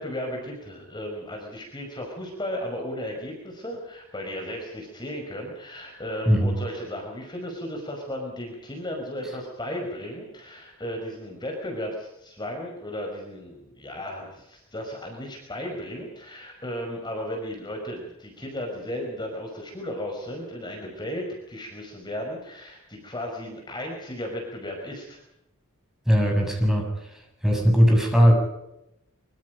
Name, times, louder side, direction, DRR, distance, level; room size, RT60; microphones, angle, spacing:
voice 1, 0.0-25.2, equal, 20° left, 1 dB, 5.3 m, -35 dB
voice 2, 26.1-26.9 27.4-28.3, equal, ahead, 0 dB, 7.3 m, -19 dB
25.0 x 24.5 x 5.3 m, 0.84 s
head